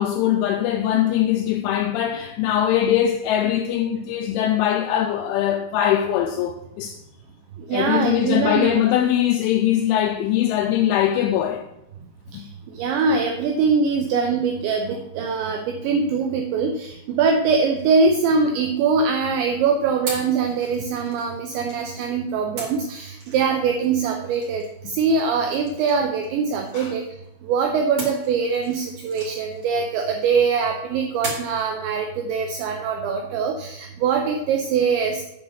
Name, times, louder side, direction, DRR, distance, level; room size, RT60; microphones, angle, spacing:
voice 1, 0.0-7.0 7.7-11.7 12.3-12.4 26.7-26.9, left 11 dB, 90° left, 2.7 m, -21 dB
voice 2, 7.7-8.7 12.3-12.4 12.7-27.0 27.4-35.2, right 5 dB, 80° right, 2.6 m, -22 dB
sound 1, 17.7-19.2 20.1-22.1 22.6-27.2 28.0-30.5 31.2-31.7, right 2 dB, 40° right, 2.4 m, -39 dB
7.9 x 5.7 x 6.3 m
omnidirectional pair, 6.0 m